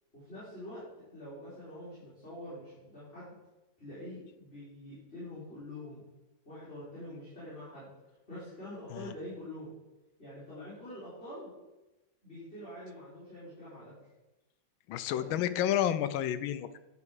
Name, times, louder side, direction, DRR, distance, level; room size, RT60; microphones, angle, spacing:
voice 1, 0.1-0.8 1.1-3.4 3.8-6.0 6.5-7.9 8.3-9.7 10.2-11.5 12.2-13.9 15.1-15.5, left 1 dB, 30° left, -11 dB, 3.7 m, -45 dB
voice 2, 14.9-16.7, left 10 dB, 90° left, 13 dB, 1.4 m, -30 dB
9.6 x 5.4 x 4.8 m, 1.0 s
omnidirectional pair, 2.1 m